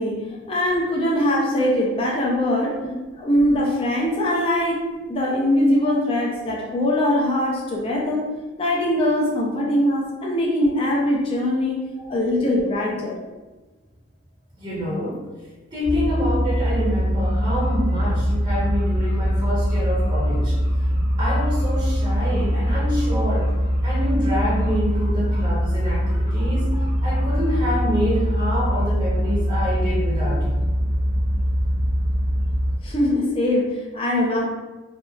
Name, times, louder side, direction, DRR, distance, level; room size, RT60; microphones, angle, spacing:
voice 1, 0.0-2.8 3.2-8.3 8.6-13.2 32.8-34.4, left 1 dB, 30° left, -3 dB, 0.5 m, -22 dB
voice 2, 14.6-15.3 15.7-20.6 21.2-23.5 23.8-30.5, equal, 25° right, -7 dB, 0.6 m, -27 dB
sound 1, 15.8-32.8, equal, 45° left, 0.9 m, -22 dB
2.7 x 2.3 x 2.2 m, 1.2 s
head